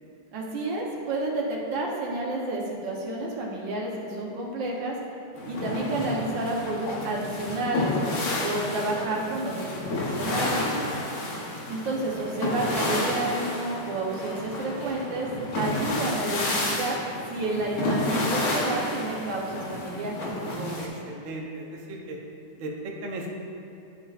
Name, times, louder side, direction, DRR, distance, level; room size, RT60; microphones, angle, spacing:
voice 1, 0.3-5.0 5.4-7.9 8.4-10.6 11.7-15.3 15.5-17.0 17.3-20.2, right 2 dB, 85° right, -2 dB, 1.7 m, -30 dB
sound 1, 5.4-20.9, left 1 dB, 60° left, 1.4 m, -30 dB
voice 2, 10.6-11.1 20.4-22.2 22.6-23.3, right 1 dB, 55° right, -1 dB, 1.0 m, -36 dB
11.0 x 5.7 x 2.4 m, 2.6 s
omnidirectional pair, 1.9 m